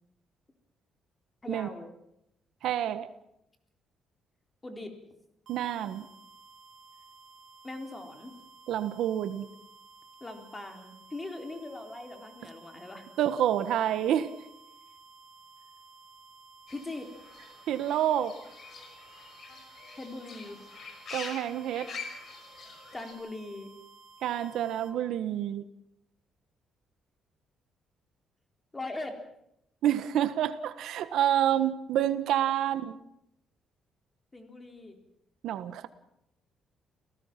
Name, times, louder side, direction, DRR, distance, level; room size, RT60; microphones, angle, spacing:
voice 1, 1.4-1.9 4.6-4.9 7.6-8.3 10.2-13.0 16.7-17.1 20.0-20.6 22.9-23.7 28.7-29.2 34.3-35.0, left 2 dB, 20° left, 5 dB, 3.7 m, -40 dB
voice 2, 2.6-3.1 5.5-6.1 8.7-9.5 13.2-14.3 17.7-18.4 21.1-21.9 24.2-25.6 29.8-33.0 35.4-35.9, right 11 dB, 80° right, 12 dB, 1.4 m, -28 dB
sound 1, 5.5-24.9, right 3 dB, 60° right, 4.3 m, -55 dB
Fowl / Bird, 16.7-23.1, left 4 dB, 50° left, 5.8 m, -45 dB
29.5 x 17.5 x 6.0 m, 0.79 s
cardioid pair, 120°, 0 cm